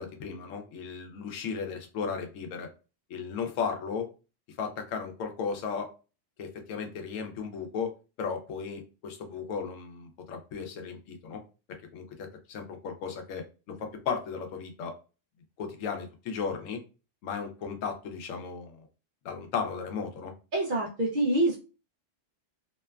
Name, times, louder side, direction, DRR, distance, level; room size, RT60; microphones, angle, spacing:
voice 1, 0.0-2.7 3.1-4.1 4.6-5.9 6.4-7.9 8.2-11.4 11.9-12.0 12.5-14.9 15.6-16.8 17.2-18.9 19.2-20.3, left 6 dB, 90° left, 5 dB, 1.0 m, -35 dB
voice 2, 20.5-21.6, right 1 dB, 60° right, -2 dB, 0.5 m, -26 dB
2.9 x 2.2 x 2.2 m, 0.33 s
omnidirectional pair, 1.3 m